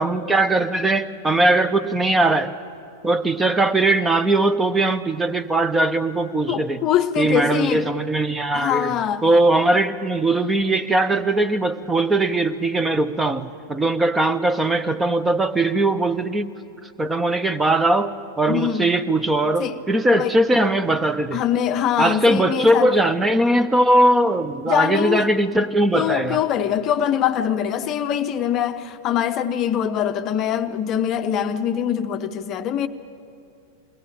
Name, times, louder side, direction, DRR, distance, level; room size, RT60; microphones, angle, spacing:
voice 1, 0.0-2.5 3.0-6.9 7.2-16.5 17.0-18.1 18.4-21.4 22.0-26.4, right 2 dB, 10° right, 0.8 m, -20 dB
voice 2, 6.5-7.9 8.5-9.3 18.5-18.9 19.6-19.8 20.1-20.3 21.3-22.9 24.7-25.3 25.9-32.9, left 9 dB, 35° left, 0.7 m, -23 dB
22.5 x 17.5 x 8.8 m
figure-of-eight pair, 90°, 0 cm